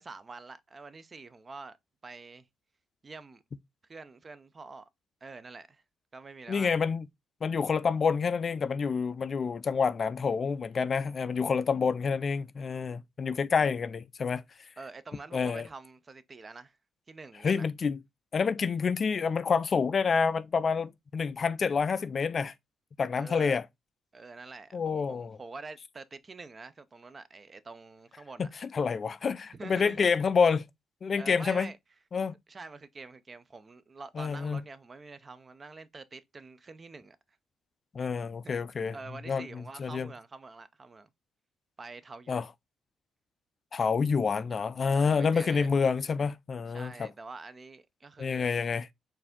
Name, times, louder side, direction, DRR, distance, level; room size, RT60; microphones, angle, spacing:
voice 1, 0.0-1.8 2.0-2.5 3.0-3.4 3.9-4.9 5.2-5.8 6.1-6.7 14.8-16.8 17.1-17.7 23.2-23.6 24.1-28.5 29.5-30.0 31.2-31.8 32.5-37.2 38.4-38.6 38.9-41.1 41.8-42.5 44.8-45.7 46.7-48.6, right 3 dB, 30° right, 0.5 m, -46 dB
voice 2, 6.5-7.1 7.4-14.4 15.3-15.7 17.4-18.0 18.3-22.5 23.0-23.6 24.7-25.4 28.4-30.7 31.0-31.7 32.1-32.3 34.2-34.6 37.9-39.0 39.3-40.1 42.3-42.5 43.7-47.1 48.2-48.9, left 5 dB, 45° left, 0.3 m, -28 dB
4.6 x 2.6 x 3.6 m
cardioid pair, 90°, 0 cm